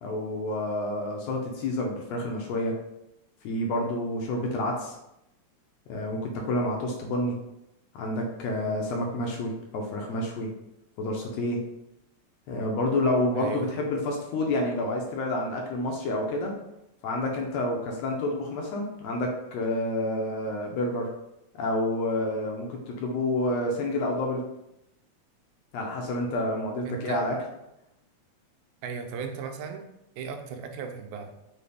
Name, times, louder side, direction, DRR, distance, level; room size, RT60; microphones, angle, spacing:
voice 1, 0.0-2.7 3.4-5.0 5.9-7.4 7.9-10.5 11.0-11.6 12.5-16.5 17.0-21.1 21.5-24.4 25.7-27.4, left 1 dB, 75° left, 1 dB, 1.7 m, -29 dB
voice 2, 13.3-13.8 26.8-27.2 28.8-29.9 30.2-31.3, right 6 dB, 85° right, 5 dB, 2.0 m, -36 dB
5.4 x 2.4 x 3.3 m, 0.85 s
omnidirectional pair, 3.3 m